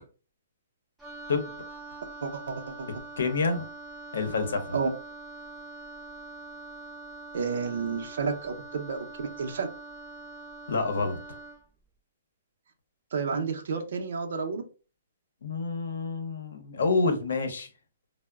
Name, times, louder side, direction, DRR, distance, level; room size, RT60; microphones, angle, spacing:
Wind instrument woodwind instrument, 1.0-11.6, right 3 dB, ahead, 0.4 m, -44 dB
voice 1, 2.2-2.9 4.7-4.9 7.3-9.7 13.1-14.6, right 5 dB, 60° right, 0.5 m, -31 dB
voice 2, 3.2-3.7 4.1-4.8 10.7-11.4 15.4-17.7, left 3 dB, 80° left, 0.7 m, -28 dB
3.7 x 2.0 x 2.3 m
hypercardioid pair, 175°, 0 cm